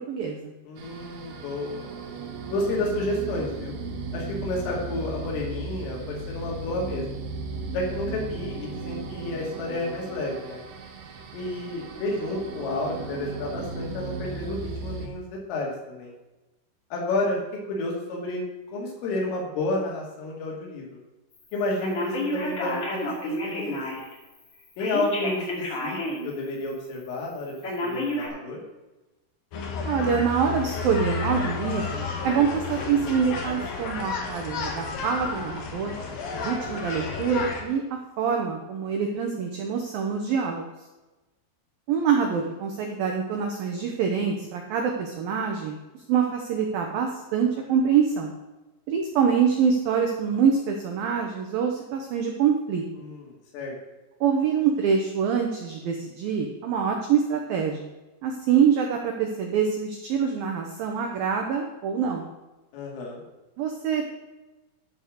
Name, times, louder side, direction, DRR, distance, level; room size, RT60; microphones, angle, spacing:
voice 1, 0.1-0.5 29.8-35.9 36.3-37.8 38.2-40.7 41.9-45.8 46.1-48.3 48.9-52.8 54.2-57.9 58.2-62.3 63.6-64.1, right 7 dB, 85° right, 2 dB, 2.0 m, -25 dB
voice 2, 0.7-1.9 2.5-3.8 4.1-7.2 7.7-10.6 11.3-16.1 16.9-17.4 17.7-18.5 18.7-20.9 21.5-23.8 24.8-26.0 26.2-27.6 27.8-28.6 53.0-53.8 62.7-63.2, left 2 dB, 85° left, -2 dB, 5.1 m, -30 dB
sound 1, 0.8-15.1, right 3 dB, 70° right, 2.2 m, -36 dB
Telephone, 21.8-24.1 24.8-26.3 26.7-26.8 27.6-28.3, left 1 dB, 40° left, 2.5 m, -30 dB
sound 2, 29.5-37.6, left 4 dB, 60° left, 2.8 m, -32 dB
12.5 x 5.2 x 6.5 m, 1.1 s
omnidirectional pair, 5.6 m